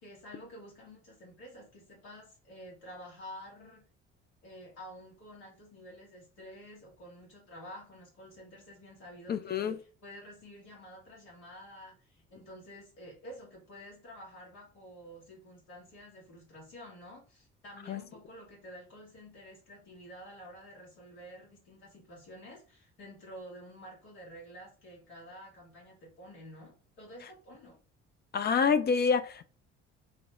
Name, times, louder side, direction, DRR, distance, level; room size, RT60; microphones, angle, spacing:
voice 1, 0.0-3.8 4.4-27.8, equal, 85° left, 1.6 m, -50 dB
voice 2, 9.3-9.8 17.9-18.0 28.3-29.4, left 6 dB, 30° left, 0.4 m, -27 dB
3.1 x 2.0 x 3.5 m
hypercardioid pair, 55°, 33 cm